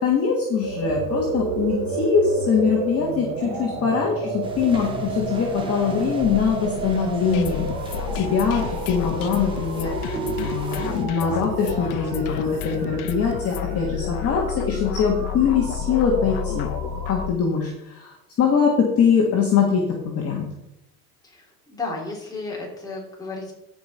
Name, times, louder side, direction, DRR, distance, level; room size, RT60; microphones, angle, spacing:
voice 1, 0.0-10.1 10.4-16.7 17.1-20.5, left 6 dB, 30° left, -1 dB, 1.7 m, -23 dB
sound 1, 0.6-17.3, right 4 dB, 35° right, 2.1 m, -32 dB
sound 2, 4.4-11.0, equal, 10° right, 1.7 m, -36 dB
sound 3, 7.3-17.4, left 10 dB, 70° left, 0.8 m, -31 dB
voice 2, 21.2-23.5, left 3 dB, 10° left, -3 dB, 3.2 m, -33 dB
15.0 x 5.2 x 4.4 m, 0.87 s
cardioid pair, 150°, 45 cm